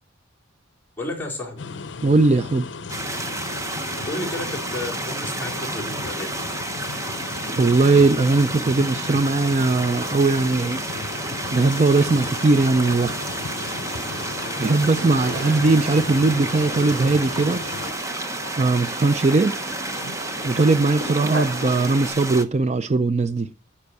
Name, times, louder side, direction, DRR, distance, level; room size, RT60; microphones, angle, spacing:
voice 1, 1.0-1.6 3.9-6.3 15.3-15.4, left 1 dB, 10° left, 4.4 m, -32 dB
sound 1, 1.6-17.9, left 4 dB, 70° left, 0.7 m, -35 dB
voice 2, 2.0-2.7 7.5-10.8 11.5-13.2 14.6-17.6 18.6-19.6 20.4-23.5, right 3 dB, 35° right, 0.5 m, -19 dB
sound 2, 2.9-22.4, right 2 dB, 15° right, 0.9 m, -31 dB
sound 3, 11.1-22.1, right 1 dB, 70° right, 4.1 m, -36 dB
9.9 x 7.2 x 8.1 m
head